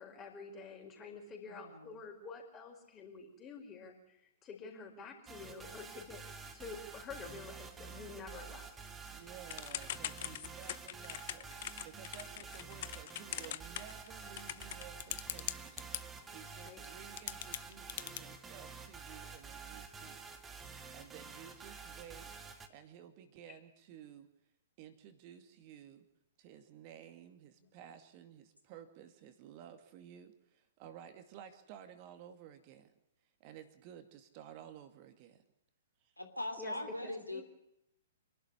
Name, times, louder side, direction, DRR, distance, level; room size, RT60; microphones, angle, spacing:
voice 1, 0.0-6.2 6.5-8.7 16.6-16.8 23.5-23.6 27.6-27.7 36.6-36.7 37.0-37.4, left 4 dB, 20° left, 2 dB, 5.0 m, -49 dB
voice 2, 1.5-1.9 10.2-10.3 36.2-37.4, left 1 dB, 90° left, 5 dB, 3.2 m, -41 dB
sound 1, 5.3-22.7, right 5 dB, 15° right, 1.9 m, -49 dB
voice 3, 9.1-15.8 16.3-24.3 24.8-26.1 26.4-32.9 33.4-35.4 36.0-36.1 36.6-37.2, right 9 dB, 35° right, 8 dB, 2.3 m, -54 dB
Typing / Telephone, 9.5-16.0 16.8-16.9 17.2-18.2, left 13 dB, 45° left, 0.8 m, -41 dB
27.0 x 12.0 x 9.9 m, 0.83 s
figure-of-eight pair, 115°, 0 cm